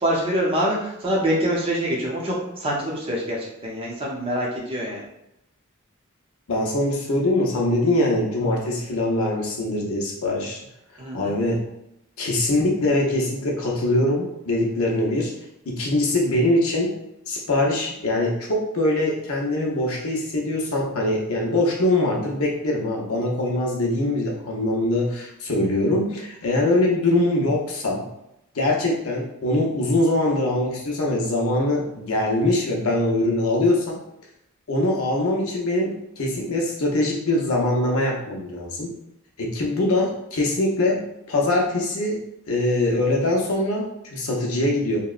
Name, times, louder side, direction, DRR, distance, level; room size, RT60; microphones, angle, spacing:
voice 1, 0.0-5.0 11.0-11.3, equal, 25° right, -3 dB, 0.5 m, -25 dB
voice 2, 6.5-10.6 11.1-11.7 12.2-15.3 15.7-17.0 17.3-28.0 28.5-34.0 34.7-38.9 39.4-42.2 42.5-45.0, left 1 dB, 70° left, -1 dB, 0.6 m, -23 dB
2.8 x 2.1 x 2.3 m, 0.83 s
head